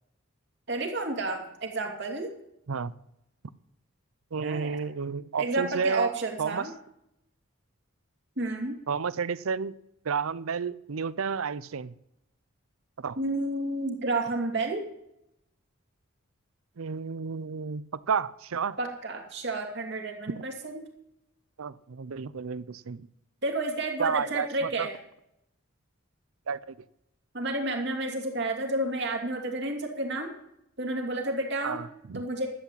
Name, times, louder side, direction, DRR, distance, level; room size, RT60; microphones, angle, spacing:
voice 1, 0.7-2.3 4.4-4.8 5.4-6.7 8.4-8.8 13.2-14.9 18.8-20.8 23.4-24.9 27.3-30.3 30.8-31.8 32.1-32.5, right 2 dB, 55° right, 2 dB, 2.7 m, -31 dB
voice 2, 4.3-6.1 6.4-6.7 8.9-9.7 10.0-12.0 13.0-13.2 16.8-18.8 21.6-23.1 24.0-24.9 26.5-26.8 31.6-32.2, right 6 dB, 80° right, 19 dB, 0.6 m, -31 dB
12.0 x 8.4 x 8.6 m, 0.80 s
head